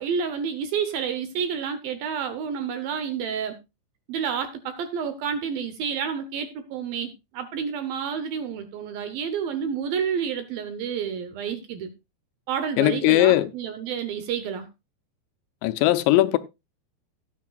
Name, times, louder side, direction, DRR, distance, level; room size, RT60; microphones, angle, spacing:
voice 1, 0.0-3.6 4.1-11.9 12.5-14.7, right 7 dB, 70° right, 2.3 m, -29 dB
voice 2, 12.8-13.5 15.6-16.4, left 16 dB, 85° left, 3.0 m, -19 dB
17.0 x 9.3 x 2.4 m
omnidirectional pair, 5.0 m